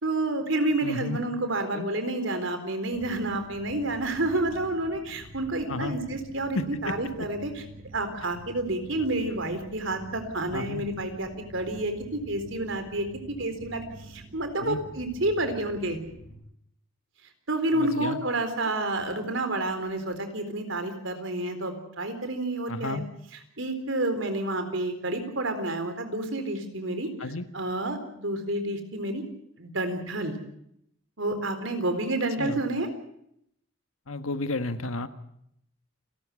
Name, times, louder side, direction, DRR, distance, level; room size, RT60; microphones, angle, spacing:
voice 1, 0.0-7.5 7.9-16.0 17.5-23.0 23.6-27.1 27.5-29.2 29.6-30.3 31.2-32.9, right 2 dB, 70° right, 8 dB, 4.0 m, -29 dB
voice 2, 0.8-1.2 1.7-1.9 5.7-6.0 6.5-6.9 10.5-10.8 14.6-14.8 17.7-18.2 18.6-18.7 22.7-23.0 27.2-27.4 32.4-32.6 34.1-35.1, left 2 dB, 90° left, 9 dB, 1.6 m, -32 dB
sound 1, 2.9-16.4, right 1 dB, 40° right, 7.3 m, -47 dB
29.5 x 13.0 x 8.4 m, 0.74 s
head